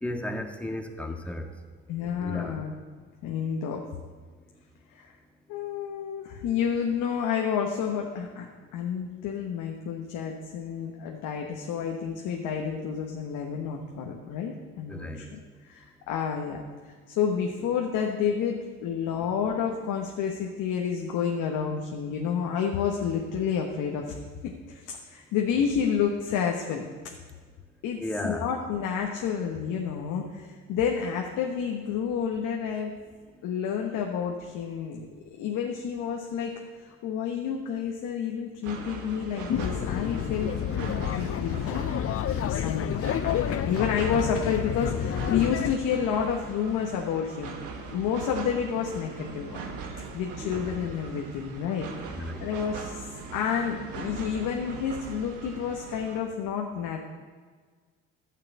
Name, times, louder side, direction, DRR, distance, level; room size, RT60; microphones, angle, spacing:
voice 1, 0.0-1.5 2.2-2.6 14.9-15.2 19.2-19.3 28.0-28.5 50.3-50.7 52.2-52.5, left 1 dB, 5° left, 3 dB, 1.7 m, -34 dB
voice 2, 1.9-2.7 3.2-3.8 4.9-5.1 5.5-8.5 8.7-16.6 17.1-24.1 24.4-26.8 27.8-32.9 33.4-35.1 35.4-40.5 41.1-42.1 42.4-47.5 47.9-49.6 50.1-53.1 53.3-57.0, left 7 dB, 75° left, 1 dB, 1.3 m, -30 dB
sound 1, 38.6-56.2, right 4 dB, 75° right, 1.7 m, -40 dB
sound 2, 39.5-45.7, left 10 dB, 45° left, 0.6 m, -29 dB
11.0 x 6.6 x 8.5 m, 1.5 s
supercardioid pair, 70°, 31 cm